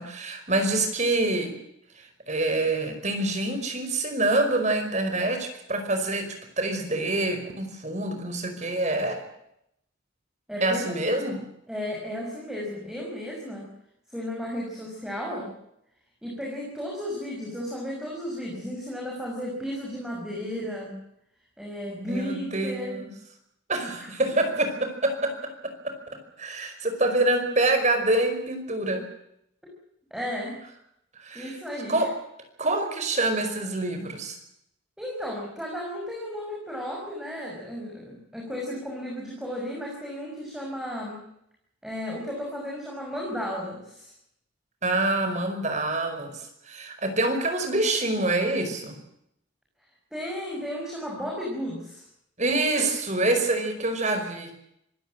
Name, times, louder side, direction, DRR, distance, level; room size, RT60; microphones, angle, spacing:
voice 1, 0.0-1.5 2.0-9.2 10.6-11.4 22.1-23.1 23.7-25.5 25.8-25.9 26.4-29.0 31.2-31.6 31.9-32.1 32.6-34.4 44.8-46.3 46.7-49.0 52.4-54.5, right 2 dB, 35° right, 6 dB, 5.1 m, -26 dB
voice 2, 10.5-11.3 11.7-13.7 14.1-15.5 16.2-21.0 21.6-23.0 24.0-24.1 29.6-29.7 30.1-30.6 31.3-32.1 35.0-41.2 41.8-44.1 50.1-52.0, equal, 5° right, -2 dB, 6.3 m, -34 dB
26.0 x 16.5 x 7.6 m, 0.77 s
head